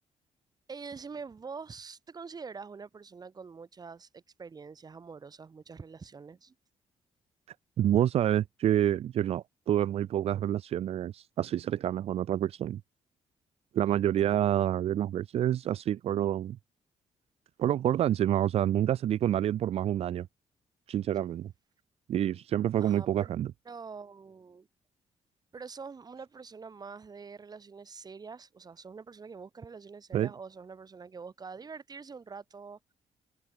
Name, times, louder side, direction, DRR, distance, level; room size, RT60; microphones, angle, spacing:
voice 1, 0.7-6.5 14.2-14.5 22.8-23.3 23.6-24.7 25.5-32.8, right 5 dB, 35° right, 6.3 m, -45 dB
voice 2, 7.8-12.8 13.7-16.6 17.6-20.3 20.9-21.5 22.1-23.5 30.1-30.3, right 11 dB, 60° right, 0.4 m, -28 dB
cardioid pair, 115°, 11 cm